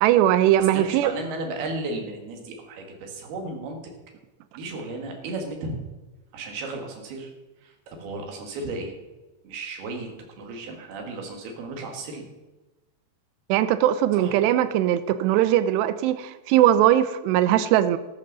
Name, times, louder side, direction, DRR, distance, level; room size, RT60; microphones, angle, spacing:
voice 1, 0.0-1.1 13.5-18.0, right 12 dB, 80° right, 12 dB, 2.7 m, -20 dB
voice 2, 0.6-3.9 4.5-5.8 6.3-7.3 7.6-9.0 9.4-10.1 10.4-12.3 14.2-14.3, right 2 dB, 65° right, 2 dB, 3.7 m, -34 dB
14.0 x 13.5 x 4.1 m, 1.1 s
omnidirectional pair, 5.2 m